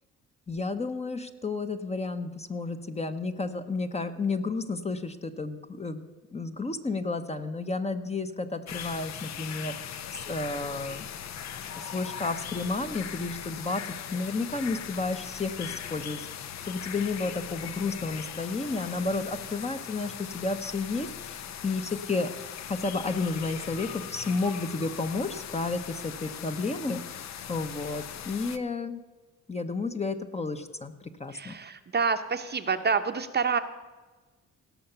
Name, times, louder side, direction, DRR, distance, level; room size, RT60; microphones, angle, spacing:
voice 1, 0.5-11.0 11.8-16.3 16.7-22.3 22.7-29.0 29.5-31.5, left 3 dB, 20° left, 8 dB, 0.9 m, -32 dB
sound 1, 8.7-28.6, left 9 dB, 65° left, 0.7 m, -40 dB
voice 2, 31.3-33.6, right 5 dB, 35° right, 8 dB, 0.8 m, -27 dB
17.5 x 5.8 x 6.8 m, 1.2 s
cardioid pair, 90°, 30 cm